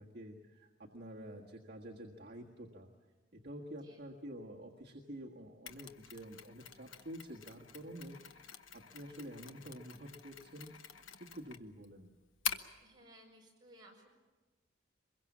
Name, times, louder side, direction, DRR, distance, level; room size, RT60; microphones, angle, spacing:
voice 1, 0.0-2.9 3.3-10.7 11.2-12.1, equal, 50° right, -2 dB, 1.6 m, -49 dB
voice 2, 3.6-4.0 12.8-14.1, right 1 dB, 20° right, -2 dB, 6.2 m, -59 dB
Mechanisms, 5.7-12.8, left 7 dB, 75° left, 1.1 m, -46 dB
24.0 x 22.0 x 7.3 m, 1.3 s
head